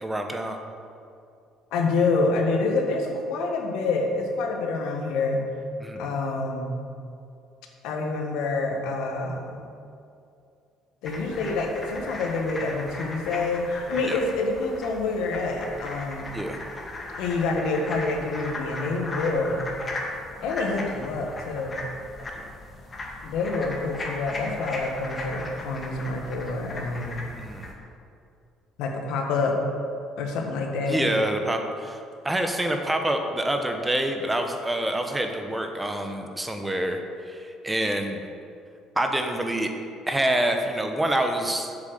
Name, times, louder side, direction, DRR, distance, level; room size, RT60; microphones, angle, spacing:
voice 1, 0.0-0.6 5.8-6.1 14.0-14.2 16.3-16.6 27.4-27.7 30.9-38.2 39.0-39.7 40.1-41.7, right 1 dB, 10° right, 4 dB, 1.0 m, -27 dB
voice 2, 1.7-5.5 6.0-6.8 7.8-9.6 11.0-16.3 17.2-19.7 20.4-21.8 23.2-27.2 28.8-29.6 30.2-31.0, left 3 dB, 80° left, 2 dB, 1.5 m, -27 dB
sound 1, 11.0-27.7, left 2 dB, 30° left, 2.1 m, -37 dB
7.6 x 7.2 x 6.7 m, 2.5 s
cardioid pair, 100°, 0 cm